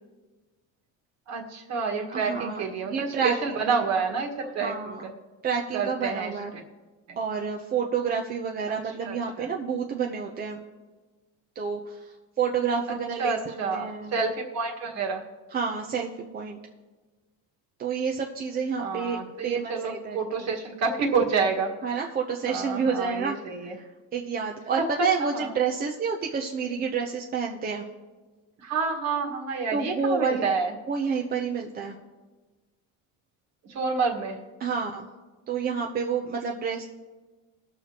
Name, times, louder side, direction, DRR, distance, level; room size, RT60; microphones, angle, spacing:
voice 1, 1.3-5.1 5.7-6.6 7.1-7.2 8.7-8.8 9.0-9.5 12.9-15.2 18.8-21.7 22.4-23.8 24.8-24.9 25.2-25.5 28.6-30.7 33.7-34.4, right 5 dB, 45° right, 2 dB, 1.6 m, -29 dB
voice 2, 2.1-3.9 4.6-5.0 5.4-6.5 7.2-10.6 11.6-13.4 13.7-14.2 15.5-16.6 17.8-20.5 21.8-23.9 24.1-27.9 29.7-30.4 30.9-32.0 34.6-35.1 35.5-36.8, right 6 dB, 25° right, 1 dB, 0.6 m, -29 dB
19.5 x 6.7 x 2.9 m, 1.3 s
cardioid pair, 145°, 36 cm